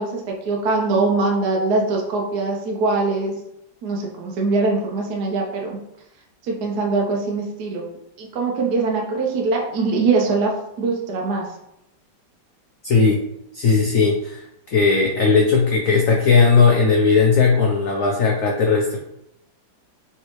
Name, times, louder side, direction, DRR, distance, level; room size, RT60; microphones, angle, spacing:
voice 1, 0.0-3.4 3.8-5.8 6.4-7.8 8.2-11.5, right 3 dB, 65° right, -1 dB, 1.1 m, -22 dB
voice 2, 12.8-13.2 13.5-14.4 14.7-19.0, left 4 dB, 85° left, 0 dB, 0.7 m, -17 dB
4.3 x 3.5 x 3.1 m, 0.82 s
omnidirectional pair, 2.1 m